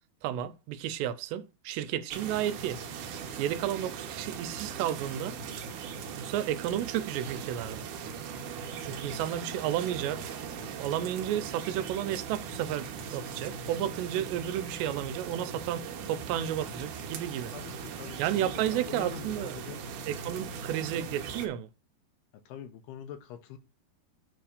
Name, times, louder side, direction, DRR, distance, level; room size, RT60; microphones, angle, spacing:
voice 1, 0.2-3.1 3.4-5.4 6.2-7.9 8.8-10.3 10.8-17.5 18.2-19.6 20.1-21.7, right 11 dB, 90° right, 2.9 m, -32 dB
sound 1, 2.1-21.5, right 6 dB, 75° right, 1.9 m, -40 dB
voice 2, 17.5-19.8 22.5-23.6, left 10 dB, 75° left, 2.8 m, -44 dB
8.6 x 3.4 x 6.5 m
omnidirectional pair, 4.9 m